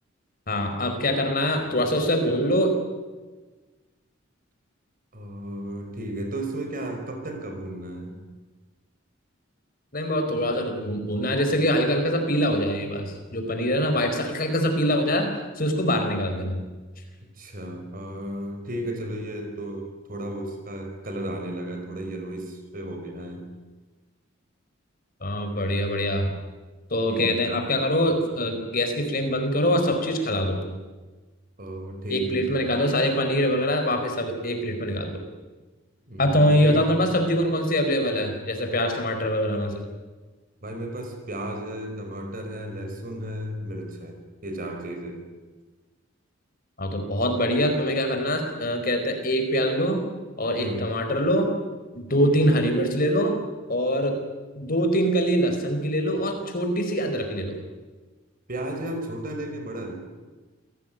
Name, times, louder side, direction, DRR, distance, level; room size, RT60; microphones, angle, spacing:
voice 1, 0.5-2.8 9.9-15.3 15.6-16.6 25.2-26.3 26.9-30.6 32.1-35.2 36.2-39.9 46.8-50.0 50.4-51.5 51.9-53.4 53.7-54.2 54.6-57.6, equal, 45° left, 5 dB, 4.7 m, -24 dB
voice 2, 5.1-8.3 17.4-23.5 27.1-27.5 31.6-32.8 36.1-37.0 40.6-45.3 50.6-51.0 58.5-59.9, right 1 dB, 45° right, 5 dB, 5.1 m, -34 dB
27.5 x 18.0 x 9.2 m, 1.3 s
head